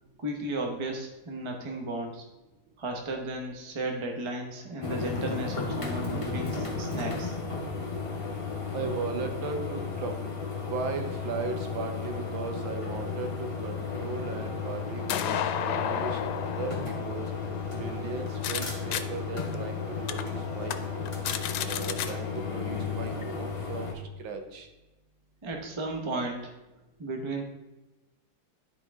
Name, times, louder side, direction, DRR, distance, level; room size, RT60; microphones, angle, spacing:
voice 1, 0.2-2.2 2.8-7.3 25.4-26.5 27.0-27.4, right 2 dB, 25° right, 2 dB, 0.6 m, -34 dB
sound 1, 4.8-23.9, left 4 dB, 25° left, 0.7 m, -34 dB
voice 2, 8.7-10.2 10.7-17.2 17.8-20.8 21.6-24.7, right 4 dB, 80° right, 5 dB, 1.7 m, -37 dB
sound 2, 13.9-18.6 18.9-19.0 19.5-19.6 20.1-20.2 20.6-20.8 21.1-22.1, left 10 dB, 90° left, 1.4 m, -33 dB
10.5 x 4.6 x 3.5 m, 1.1 s
omnidirectional pair, 2.1 m